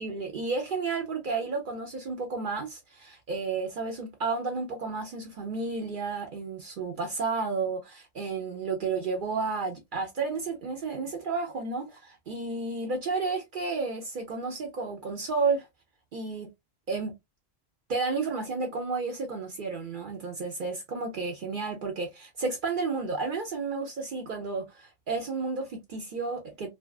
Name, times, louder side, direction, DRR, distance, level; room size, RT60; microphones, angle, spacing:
voice 1, 0.0-15.7 16.1-16.5 16.9-17.1 17.9-26.7, right 4 dB, 60° right, 0.7 m, -32 dB
2.6 x 2.3 x 2.3 m
omnidirectional pair, 1.1 m